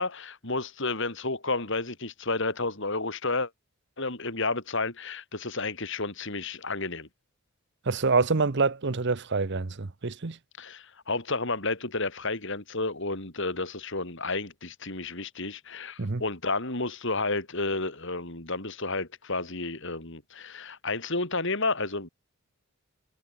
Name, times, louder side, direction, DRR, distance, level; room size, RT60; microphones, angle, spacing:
voice 1, 0.0-3.5 4.0-7.1 10.6-22.1, left 3 dB, 60° left, 4.7 m, -31 dB
voice 2, 7.8-10.4 16.0-16.2, right 4 dB, 55° right, 0.9 m, -26 dB
head